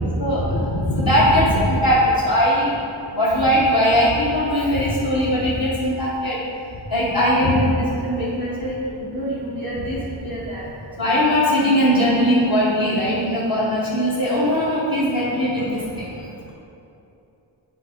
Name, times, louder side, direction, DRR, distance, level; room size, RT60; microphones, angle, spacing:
voice 1, 0.2-2.7 3.1-6.4 6.9-10.7 11.0-16.1, equal, 45° left, -9 dB, 1.2 m, -20 dB
7.7 x 3.7 x 5.0 m, 2.8 s
wide cardioid pair, 90°, 48 cm